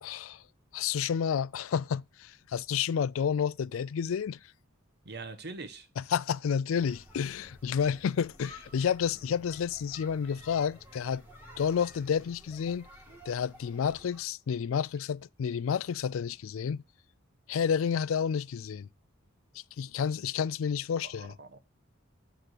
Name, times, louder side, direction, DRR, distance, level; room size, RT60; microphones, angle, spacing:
voice 1, 0.0-0.4 0.7-4.4 6.0-11.2 11.6-12.9 13.3-16.8 17.5-18.9 19.5-21.3, left 7 dB, 75° left, 0.4 m, -30 dB
voice 2, 5.0-5.9 21.0-21.6, right 3 dB, 50° right, 1.2 m, -43 dB
sound 1, 6.7-14.2, equal, 10° right, 2.0 m, -53 dB
9.3 x 3.7 x 6.4 m
head